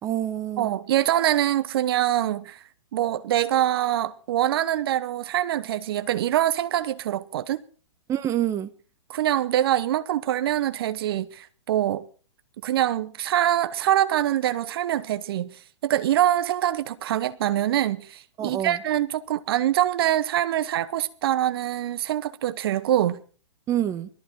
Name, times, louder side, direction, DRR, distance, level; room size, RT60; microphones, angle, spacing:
voice 1, 0.0-0.7 8.1-8.7 18.4-18.8 23.7-24.1, right 11 dB, 20° right, 1.0 m, -27 dB
voice 2, 0.6-2.6 2.9-7.6 9.1-12.0 12.6-15.6 15.8-23.2, right 12 dB, 50° right, 0.9 m, -24 dB
20.5 x 14.0 x 4.4 m
figure-of-eight pair, 120°, 16 cm